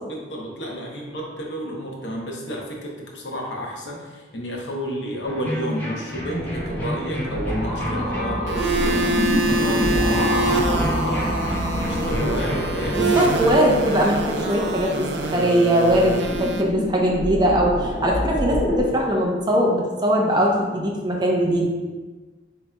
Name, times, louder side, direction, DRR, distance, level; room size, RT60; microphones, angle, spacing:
voice 1, 0.0-9.2 9.5-13.0 14.6-14.7, equal, 85° left, -1 dB, 0.9 m, -31 dB
sound 1, 5.2-13.4, equal, 10° left, 0.7 m, -31 dB
sound 2, 6.3-18.8, equal, 35° left, 1.2 m, -27 dB
sound 3, 8.5-16.6, right 3 dB, 85° right, 0.4 m, -26 dB
voice 2, 12.9-15.0 15.3-21.7, equal, 25° right, -1 dB, 0.6 m, -20 dB
7.3 x 3.0 x 2.2 m, 1.3 s
head